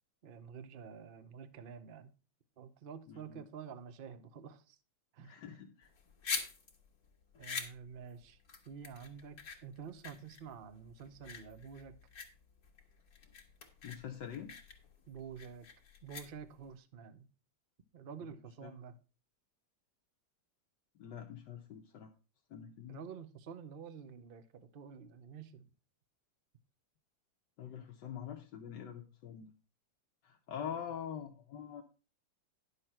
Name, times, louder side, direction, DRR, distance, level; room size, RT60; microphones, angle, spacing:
voice 1, 0.2-2.1 2.6-4.8 5.1-5.4 7.4-8.4 8.7-11.9 15.1-15.7 16.0-17.3 17.9-18.9 22.9-25.7, right 7 dB, 45° right, 0.7 m, -49 dB
voice 2, 3.1-3.4 5.2-5.9 13.8-14.5 18.6-18.7 21.0-22.1 22.5-23.0 27.6-29.5 30.2-31.8, left 8 dB, 75° left, 1.5 m, -45 dB
sound 1, 5.8-16.7, left 5 dB, 55° left, 2.1 m, -45 dB
10.5 x 7.0 x 4.4 m
omnidirectional pair, 2.0 m